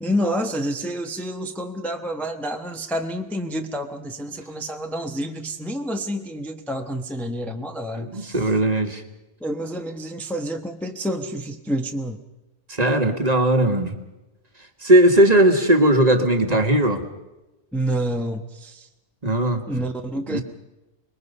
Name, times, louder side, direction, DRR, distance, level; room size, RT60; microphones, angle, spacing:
voice 1, 0.0-8.5 9.4-12.2 17.7-18.9 19.7-20.4, equal, ahead, 4 dB, 1.0 m, -28 dB
voice 2, 8.1-9.0 12.7-13.9 14.8-17.0 19.2-19.6 20.3-20.4, right 1 dB, 30° right, 5 dB, 1.7 m, -18 dB
25.5 x 21.5 x 5.5 m, 1.0 s
omnidirectional pair, 1.3 m